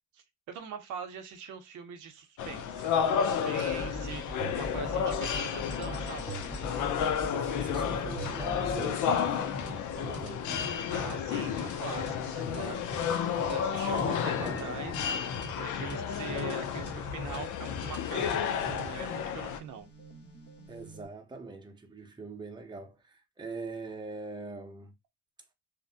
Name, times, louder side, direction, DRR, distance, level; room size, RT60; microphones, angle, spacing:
voice 1, 0.1-6.4 10.9-19.9, right 7 dB, 85° right, 0.7 m, -43 dB
sound 1, 2.4-19.6, left 8 dB, 80° left, 0.5 m, -32 dB
sound 2, 3.7-8.7, equal, 15° left, 1.3 m, -39 dB
sound 3, 5.7-21.1, left 1 dB, 50° left, 1.1 m, -44 dB
voice 2, 7.3-9.4 9.9-10.9 13.7-14.8 20.7-24.9, right 3 dB, 15° right, 0.6 m, -43 dB
2.6 x 2.1 x 2.7 m
cardioid pair, 90°, 30 cm